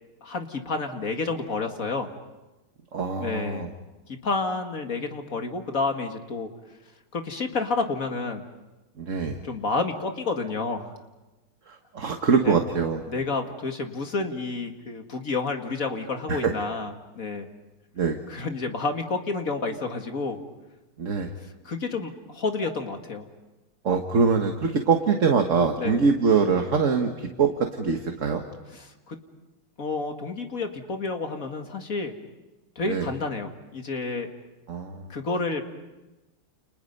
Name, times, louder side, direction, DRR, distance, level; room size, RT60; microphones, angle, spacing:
voice 1, 0.2-2.1 3.2-3.7 4.1-6.5 7.1-8.4 9.4-11.0 12.4-12.6 13.1-17.5 18.3-20.4 21.6-23.3 25.8-26.0 28.7-29.2 29.8-32.1 32.8-34.3 35.1-35.6, left 3 dB, 40° left, 5 dB, 2.2 m, -30 dB
voice 2, 2.9-3.7 9.0-9.4 11.7-13.0 16.3-16.5 18.0-18.2 21.0-21.3 23.8-28.4 32.9-33.1 34.7-35.1, right 5 dB, 40° right, 4 dB, 1.6 m, -23 dB
30.0 x 30.0 x 5.5 m, 1.1 s
omnidirectional pair, 2.4 m